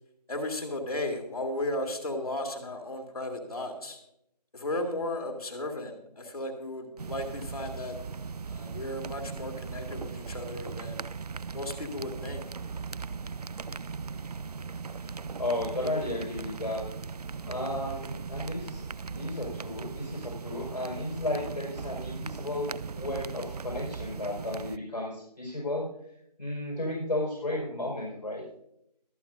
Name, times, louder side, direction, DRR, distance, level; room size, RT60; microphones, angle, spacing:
voice 1, 0.3-4.0 4.5-8.0 8.5-11.0 11.5-12.4, left 1 dB, 60° left, 3 dB, 2.4 m, -35 dB
sound 1, 7.0-24.8, right 5 dB, 65° right, 0.4 m, -38 dB
voice 2, 15.4-16.8 17.5-22.7 23.0-25.8 26.4-28.4, left 1 dB, 75° left, -3 dB, 5.3 m, -33 dB
23.0 x 8.2 x 2.7 m, 0.78 s
figure-of-eight pair, 160°, 21 cm